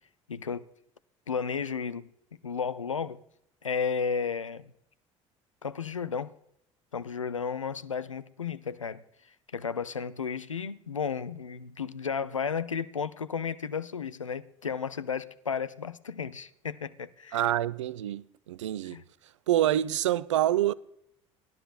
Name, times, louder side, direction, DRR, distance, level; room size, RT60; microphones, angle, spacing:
voice 1, 0.3-0.7 1.3-2.1 2.4-3.2 3.6-4.7 5.6-6.3 6.9-9.0 9.5-17.5 18.9-19.0, left 6 dB, 85° left, 0.4 m, -33 dB
voice 2, 17.3-19.0 19.5-20.7, right 12 dB, 70° right, 0.4 m, -26 dB
19.0 x 12.0 x 2.4 m
figure-of-eight pair, 60°, 16 cm